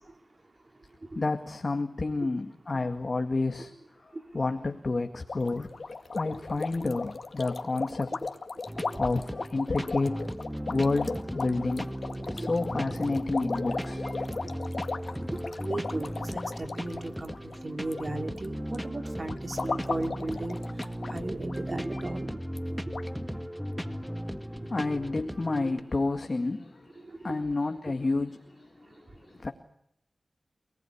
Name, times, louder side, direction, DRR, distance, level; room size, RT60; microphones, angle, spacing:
voice 1, 1.2-3.7 4.0-5.7 6.1-8.2 9.0-10.3 10.7-11.9 12.3-14.1 23.8-29.5, left 3 dB, 45° left, 5 dB, 2.0 m, -30 dB
sound 1, 5.3-18.0 18.3-18.7 19.3-21.2 21.5-21.6 21.9-22.0 22.6-22.7 22.9-23.1, left 4 dB, 65° left, 2.1 m, -36 dB
sound 2, 8.7-25.8, equal, 5° right, 1.7 m, -36 dB
voice 2, 15.5-20.6 21.1-22.3 23.8-23.9 25.6-25.7 27.1-27.4, right 2 dB, 40° right, 6 dB, 3.2 m, -36 dB
28.5 x 19.0 x 10.0 m, 0.72 s
wide cardioid pair, 90°, 0 cm